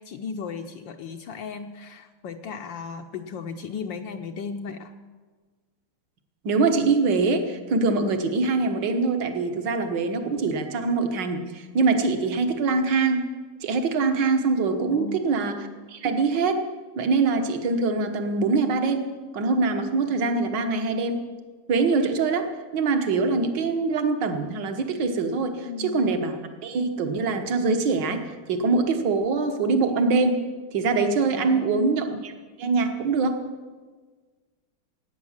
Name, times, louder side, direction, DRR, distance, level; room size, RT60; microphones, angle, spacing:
voice 1, 0.0-4.9 14.8-15.4 25.6-26.0 31.3-32.0, left 5 dB, 70° left, 5 dB, 1.3 m, -36 dB
voice 2, 6.4-13.3 13.6-15.6 15.9-16.7 17.0-21.2 21.7-28.2 28.5-30.4 30.7-33.4, right 4 dB, 60° right, 7 dB, 1.8 m, -24 dB
17.0 x 9.1 x 7.3 m, 1.4 s
omnidirectional pair, 2.4 m